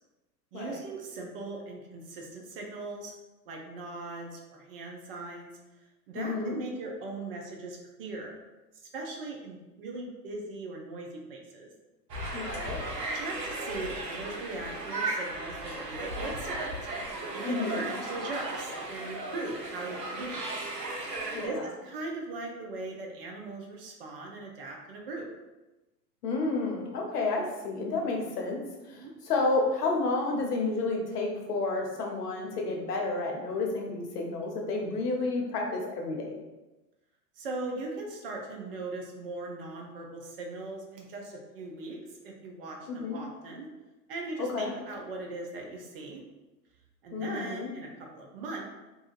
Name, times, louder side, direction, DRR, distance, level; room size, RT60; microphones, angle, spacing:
voice 1, 0.5-3.1 3.5-5.5 6.1-8.3 8.8-11.7 12.8-16.7 17.3-20.6 21.4-25.3 29.0-29.1 37.4-43.7 44.1-46.2 47.0-48.7, right 2 dB, 40° right, 0 dB, 0.5 m, -39 dB
voice 2, 6.1-6.6 12.3-12.8 17.4-17.8 21.3-21.6 26.2-36.4 42.9-43.2 44.4-44.7 47.1-47.7, left 3 dB, 70° left, 1 dB, 0.8 m, -31 dB
sound 1, 12.1-21.5, right 2 dB, 85° right, 0.7 m, -36 dB
2.7 x 2.4 x 2.4 m, 1.1 s
figure-of-eight pair, 100°, 49 cm